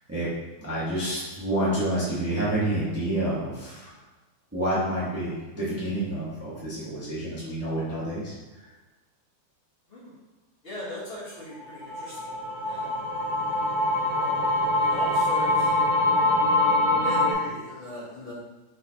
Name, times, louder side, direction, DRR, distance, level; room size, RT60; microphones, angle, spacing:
voice 1, 0.6-3.9 4.5-8.3, right 1 dB, 10° right, -9 dB, 0.9 m, -28 dB
voice 2, 10.6-12.3 12.6-13.5 14.1-14.5 14.8-15.7 16.1-16.2 17.0-18.3, left 1 dB, 40° left, -8 dB, 1.4 m, -39 dB
sound 1, 11.6-17.3, left 2 dB, 70° right, 0.4 m, -24 dB
4.2 x 4.0 x 2.8 m, 1.2 s
omnidirectional pair, 1.7 m